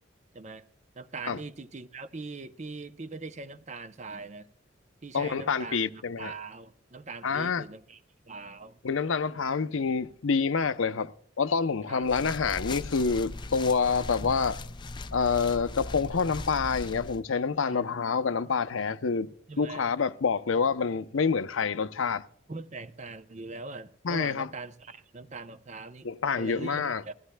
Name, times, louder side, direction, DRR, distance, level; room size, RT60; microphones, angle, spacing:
voice 1, 1.0-4.5 5.0-8.0 8.3-8.8 11.9-12.1 17.7-17.9 19.5-19.8 22.5-26.1 26.4-27.1, right 3 dB, 35° right, 0.6 m, -41 dB
voice 2, 5.1-6.3 7.2-7.6 8.8-14.6 15.1-19.3 19.6-22.2 24.0-24.5 26.0-27.0, left 5 dB, 80° left, 0.6 m, -27 dB
sound 1, 12.0-17.2, left 2 dB, 25° left, 0.4 m, -39 dB
20.5 x 14.5 x 2.2 m
head